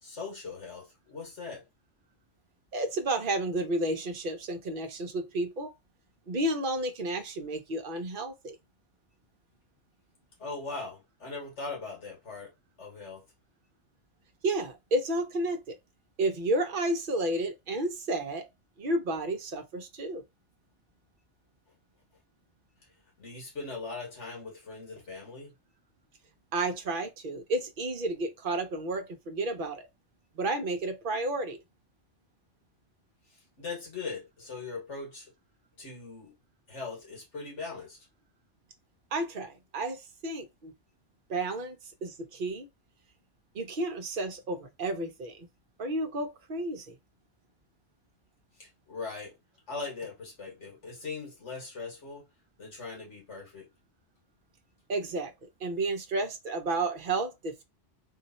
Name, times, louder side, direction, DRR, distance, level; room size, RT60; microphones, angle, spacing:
voice 1, 0.0-1.6 10.4-12.5 12.8-13.2 23.2-25.5 33.6-35.3 35.8-36.3 36.7-38.0 48.6-49.3 49.7-52.2 52.6-53.7, left 4 dB, 80° left, 2.1 m, -40 dB
voice 2, 2.7-5.7 6.3-8.6 14.4-15.7 16.2-18.5 18.8-20.2 26.5-29.9 30.3-31.6 39.1-40.7 41.3-42.7 43.5-45.5 45.8-47.0 54.9-57.6, right 2 dB, 50° right, 1.0 m, -31 dB
3.7 x 2.6 x 4.2 m
omnidirectional pair, 1.2 m